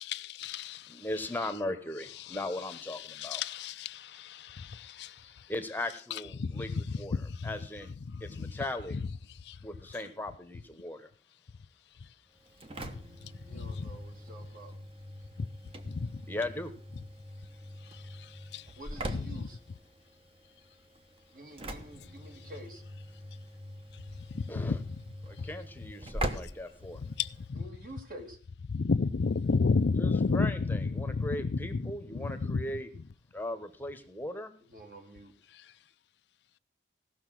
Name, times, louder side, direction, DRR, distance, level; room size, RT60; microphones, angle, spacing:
voice 1, 0.0-1.1 2.2-2.4 2.7-5.5 6.1-7.5 8.1-8.6 8.9-9.1 9.4-9.6 12.8-14.0 15.4-15.5 15.8-16.2 17.8-18.7 19.1-19.5 24.3-25.0 25.4-25.5 27.0-27.6 28.7-32.6 35.5-35.7, left 4 dB, 70° left, 0.5 m, -33 dB
voice 2, 0.9-3.4 5.5-7.2 7.4-7.9 8.2-9.0 9.6-11.1 16.3-16.7 24.5-24.8 25.3-27.0 29.9-32.9 33.3-34.5, left 1 dB, 10° left, 1.0 m, -38 dB
Engine / Slam, 12.4-27.5, right 1 dB, 30° right, 1.1 m, -43 dB
voice 3, 13.5-14.7 18.8-19.6 21.3-22.8 27.6-28.4 34.7-35.3, right 1 dB, 50° right, 2.4 m, -48 dB
16.5 x 6.4 x 6.2 m
head